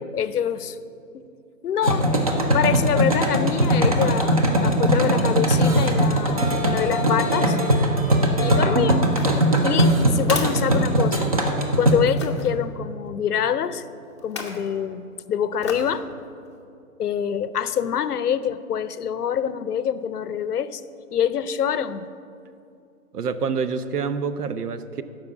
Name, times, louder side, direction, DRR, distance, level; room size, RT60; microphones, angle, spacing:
voice 1, 0.1-0.8 1.1-1.3 1.6-2.1 2.5-7.6 8.4-9.0 9.6-11.3 11.7-13.9 14.2-16.1 17.0-20.8 21.1-22.1, left 8 dB, 80° left, 14 dB, 0.7 m, -25 dB
sound 1, 1.8-11.9, right 1 dB, 25° right, 0.6 m, -20 dB
sound 2, 9.0-11.5 12.2-12.5 14.2-14.7 15.6-16.0 16.5-16.6, left 4 dB, 20° left, 0.6 m, -35 dB
voice 2, 23.1-25.0, right 5 dB, 85° right, 12 dB, 0.8 m, -27 dB
12.5 x 5.3 x 7.0 m, 2.6 s
hypercardioid pair, 160°, 45 cm